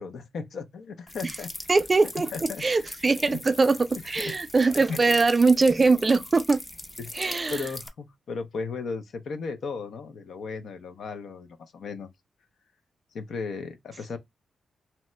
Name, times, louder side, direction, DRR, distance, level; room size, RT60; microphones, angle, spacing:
voice 1, 0.0-1.5 2.1-2.7 3.3-3.4 4.1-4.4 4.9-5.0 7.0-12.1 13.1-14.2, left 4 dB, 75° left, 0.5 m, -36 dB
sound 1, 1.1-7.9, left 1 dB, 20° left, 0.6 m, -41 dB
voice 2, 1.7-6.6 7.2-7.6, right 3 dB, 35° right, 0.4 m, -22 dB
2.8 x 2.1 x 3.1 m
cardioid pair, 85°, 0 cm